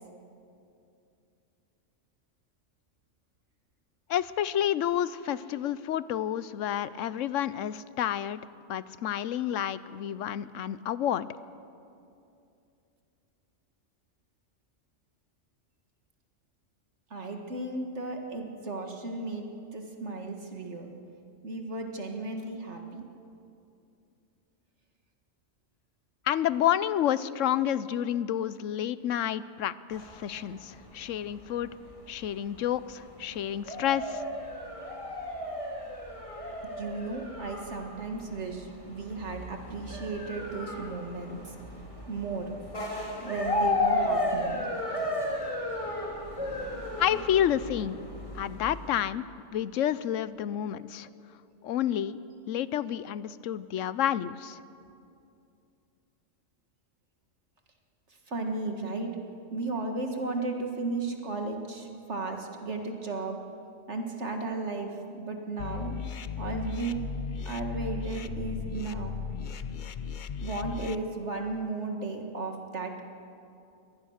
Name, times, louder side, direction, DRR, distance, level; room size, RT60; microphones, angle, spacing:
voice 1, 4.1-8.4 8.7-11.3 26.3-31.7 32.1-34.2 47.0-48.0 48.3-49.2 49.5-51.1 51.6-52.2 52.5-54.6, left 10 dB, 85° left, 16 dB, 1.0 m, -29 dB
voice 2, 17.1-20.9 21.4-23.0 36.8-41.5 42.1-42.5 43.2-44.6 58.3-59.1 59.5-63.4 63.9-66.0 66.4-66.9 67.5-69.1 70.4-73.0, right 3 dB, 65° right, 3 dB, 2.1 m, -35 dB
sound 1, 29.9-49.0, left 1 dB, 25° left, 3.2 m, -34 dB
sound 2, 65.6-70.9, left 6 dB, 50° left, 0.7 m, -36 dB
24.0 x 18.5 x 6.5 m, 2.6 s
omnidirectional pair, 1.3 m